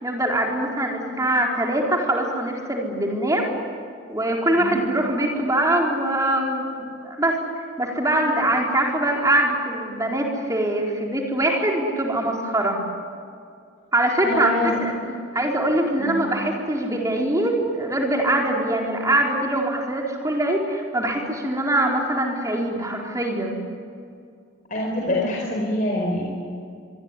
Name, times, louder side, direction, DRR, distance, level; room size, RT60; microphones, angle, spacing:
voice 1, 0.0-3.5 4.1-12.8 13.9-14.5 14.8-14.9 15.3-23.6, right 1 dB, 15° right, 0 dB, 4.2 m, -23 dB
voice 2, 14.2-15.0 16.0-16.2 24.7-26.2, left 1 dB, 40° left, -2 dB, 4.8 m, -25 dB
25.5 x 23.5 x 9.9 m, 2.4 s
head